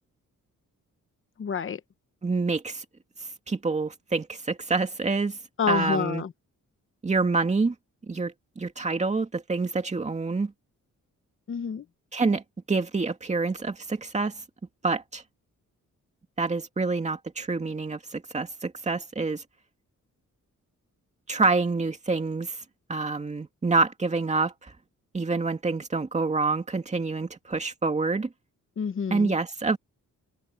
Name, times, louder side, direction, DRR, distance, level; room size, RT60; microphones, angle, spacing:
voice 1, 1.4-1.8 5.6-6.3 11.5-11.8 28.8-29.3, left 6 dB, 40° left, 0.9 m, -28 dB
voice 2, 2.2-2.8 3.5-5.4 5.7-6.2 7.0-7.7 8.1-10.5 12.1-12.4 12.7-14.3 14.8-15.2 16.4-19.4 21.3-22.6 22.9-24.5 25.1-28.3 29.1-29.8, right 3 dB, 20° right, 2.4 m, -27 dB
wide cardioid pair, 175°, 31 cm